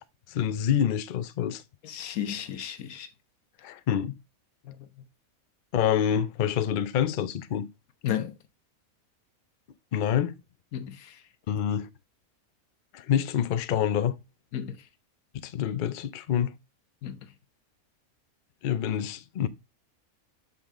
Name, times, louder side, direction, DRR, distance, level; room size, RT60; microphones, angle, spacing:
voice 1, 0.3-1.6 3.6-4.2 5.7-7.7 9.9-10.4 11.5-11.9 12.9-14.2 15.4-16.5 18.6-19.5, left 9 dB, 55° left, 0.5 m, -27 dB
voice 2, 1.8-3.1 3.6-3.7 4.6-4.9 8.0-8.3 10.7-11.2 14.5-14.8 17.0-17.2, left 10 dB, 85° left, 1.3 m, -33 dB
6.1 x 5.6 x 3.6 m
omnidirectional pair, 1.5 m